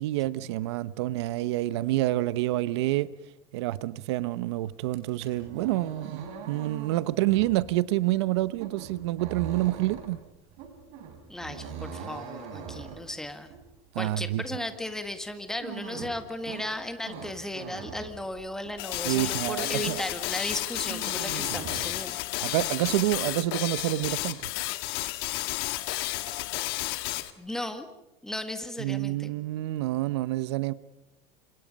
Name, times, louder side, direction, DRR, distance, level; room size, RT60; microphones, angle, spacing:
voice 1, 0.0-3.1 3.5-10.2 13.9-14.4 19.0-20.0 22.4-24.5 28.8-30.7, right 16 dB, 80° right, 0.9 m, -28 dB
sound 1, 4.9-18.9 19.2-20.2 20.5-21.9, right 6 dB, 50° right, 5.2 m, -42 dB
voice 2, 11.3-13.5 14.0-22.2 27.4-27.9 28.2-29.3, left 1 dB, 5° left, 1.8 m, -36 dB
sound 2, 18.8-27.3, left 18 dB, 65° left, 1.7 m, -32 dB
30.0 x 27.0 x 5.4 m
supercardioid pair, 160°, 14 cm